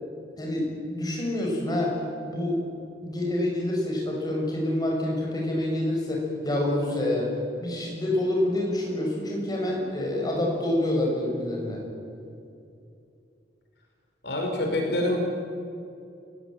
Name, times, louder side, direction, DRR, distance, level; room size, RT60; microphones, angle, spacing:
voice 1, 0.4-2.0 2.3-2.6 3.0-7.3 7.6-11.8, left 1 dB, 25° left, -1 dB, 7.1 m, -27 dB
voice 2, 14.2-15.2, left 1 dB, 65° left, 1 dB, 5.0 m, -26 dB
29.0 x 17.5 x 9.2 m, 2.6 s
head